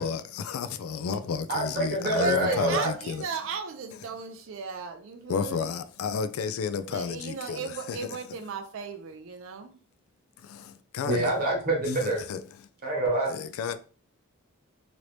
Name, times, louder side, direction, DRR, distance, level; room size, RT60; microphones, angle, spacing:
voice 1, 0.0-3.2 5.3-8.2 10.4-11.3 12.0-12.4 13.3-13.8, left 6 dB, 80° left, 0.3 m, -32 dB
voice 2, 1.5-2.9 11.1-12.2 12.8-13.3, right 1 dB, 45° right, 1.1 m, -26 dB
voice 3, 2.1-5.8 6.9-9.8, right 5 dB, 65° right, 0.4 m, -36 dB
3.0 x 2.6 x 3.2 m
head